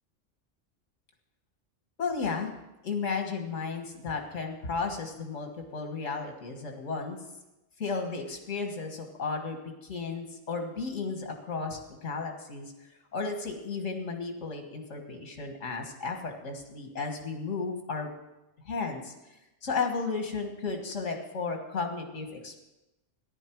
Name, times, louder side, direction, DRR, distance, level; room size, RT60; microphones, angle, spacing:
voice 1, 2.0-2.5 2.8-7.2 7.8-12.7 13.1-18.1 18.7-19.1 19.6-22.6, left 4 dB, 70° left, 3 dB, 1.9 m, -34 dB
14.5 x 11.0 x 4.6 m, 0.96 s
omnidirectional pair, 1.3 m